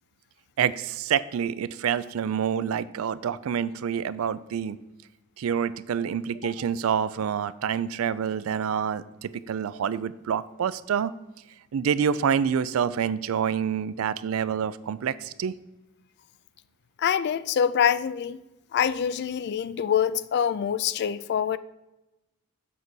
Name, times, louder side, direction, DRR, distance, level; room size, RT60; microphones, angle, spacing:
voice 1, 0.6-4.8 5.4-11.1 11.7-15.5, right 7 dB, 70° right, 0.4 m, -27 dB
voice 2, 17.0-18.4 18.7-21.6, left 8 dB, 50° left, 0.3 m, -25 dB
7.5 x 4.0 x 6.1 m
head